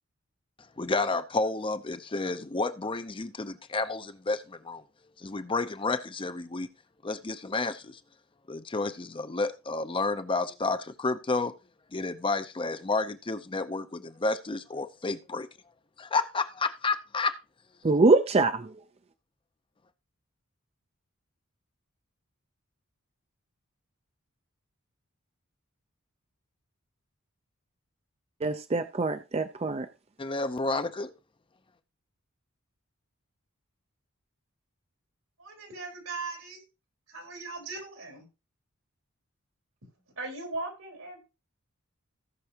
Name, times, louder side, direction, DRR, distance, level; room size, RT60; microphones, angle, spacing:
voice 1, 0.8-4.8 5.2-6.7 7.0-8.0 8.5-11.5 11.9-15.5 16.0-17.4 30.2-31.1, left 3 dB, 25° left, 0.6 m, -30 dB
voice 2, 17.8-18.7 28.4-29.9, right 3 dB, 30° right, 0.5 m, -24 dB
voice 3, 35.4-36.6 37.1-38.2 40.2-41.2, right 3 dB, 85° right, 4.1 m, -38 dB
17.0 x 6.0 x 2.9 m
head